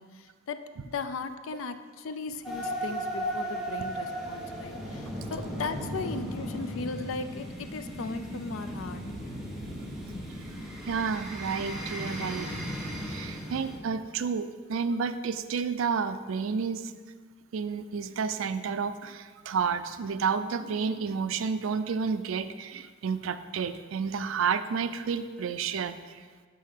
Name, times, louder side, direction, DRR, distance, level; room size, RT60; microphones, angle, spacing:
voice 1, 0.0-9.0 10.1-10.3, left 4 dB, 80° left, 10 dB, 0.5 m, -37 dB
sound 1, 2.4-13.8, equal, ahead, 1.1 m, -36 dB
voice 2, 10.9-12.5 13.1-16.9 17.5-26.2, right 6 dB, 80° right, 12 dB, 0.4 m, -30 dB
5.5 x 5.5 x 6.3 m, 1.6 s
head